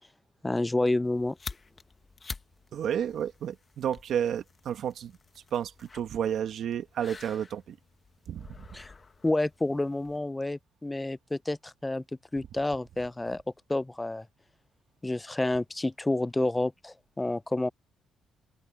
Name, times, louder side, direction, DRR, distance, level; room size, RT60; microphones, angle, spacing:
voice 1, 0.4-1.4 8.7-8.9 9.2-12.0 12.3-13.4 13.7-14.3 15.0-17.7, left 2 dB, 15° left, 0.4 m, -29 dB
sound 1, 1.0-10.2, left 4 dB, 30° left, 1.2 m, -48 dB
voice 2, 2.7-7.8 8.3-8.7, right 9 dB, 70° right, 1.7 m, -32 dB
open air
cardioid pair, 90°, 0 cm